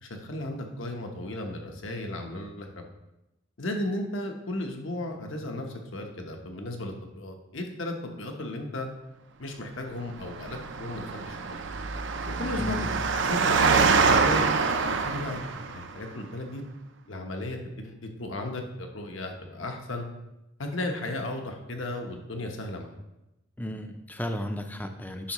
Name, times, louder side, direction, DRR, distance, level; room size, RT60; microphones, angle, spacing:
voice 1, 0.0-2.7 3.6-8.9 9.4-11.6 12.3-12.8 13.1-14.4 15.0-16.6 17.1-20.0 20.6-22.9, left 1 dB, 70° left, 3 dB, 1.0 m, -35 dB
Engine, 10.2-15.9, right 4 dB, 60° right, 0.6 m, -25 dB
voice 2, 12.6-12.9 23.6-25.3, left 1 dB, 10° left, 6 dB, 0.5 m, -34 dB
10.0 x 6.5 x 3.1 m, 0.95 s
head